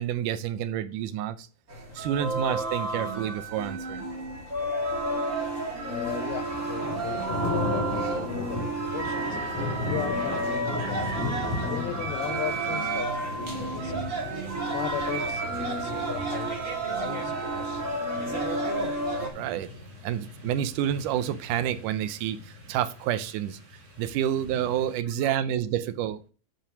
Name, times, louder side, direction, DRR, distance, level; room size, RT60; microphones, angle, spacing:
voice 1, 0.0-1.5 2.0-4.0 19.2-19.7 20.0-23.6 24.0-26.3, right 10 dB, 80° right, 1.8 m, -29 dB
sound 1, 1.7-19.3, right 2 dB, 30° right, 1.5 m, -31 dB
sound 2, 3.8-3.9 5.8-6.9 8.8-9.9 11.8-12.9 14.8-15.9 17.8-18.7, right 3 dB, 65° right, 2.6 m, -43 dB
voice 2, 5.9-9.4 9.9-11.1 11.6-13.9 14.7-17.9 18.3-18.5 25.2-25.4, left 15 dB, 80° left, 2.4 m, -37 dB
sound 3, 5.9-25.0, left 2 dB, 45° right, 2.8 m, -37 dB
7.5 x 5.2 x 5.9 m
omnidirectional pair, 4.4 m